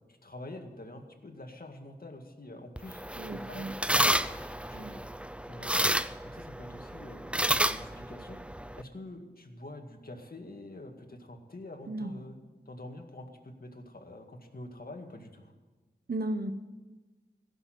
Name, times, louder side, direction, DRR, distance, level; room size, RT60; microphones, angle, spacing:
voice 1, 0.0-5.0 5.4-5.9 6.2-8.4 8.8-12.4 12.7-15.5, left 1 dB, 55° left, 3 dB, 2.1 m, -46 dB
sound 1, 2.8-8.8, right 1 dB, 5° right, 0.6 m, -31 dB
voice 2, 3.2-3.7 4.7-5.0 11.9-12.1 16.1-16.5, right 1 dB, 65° right, 8 dB, 0.9 m, -35 dB
16.0 x 7.1 x 9.3 m, 1.3 s
cardioid pair, 40°, 18 cm